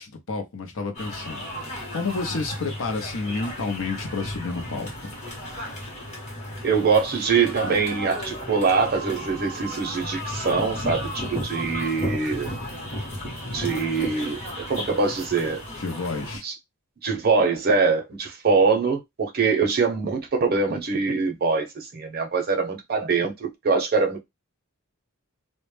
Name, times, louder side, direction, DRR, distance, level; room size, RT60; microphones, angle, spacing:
voice 1, 0.0-5.1 15.8-16.4, left 3 dB, 60° left, 0.6 m, -30 dB
sound 1, 0.9-16.4, equal, 30° left, 0.8 m, -34 dB
voice 2, 6.6-12.5 13.5-15.6 16.4-16.5 17.0-24.2, right 4 dB, 45° right, 0.6 m, -23 dB
2.1 x 2.0 x 3.1 m
head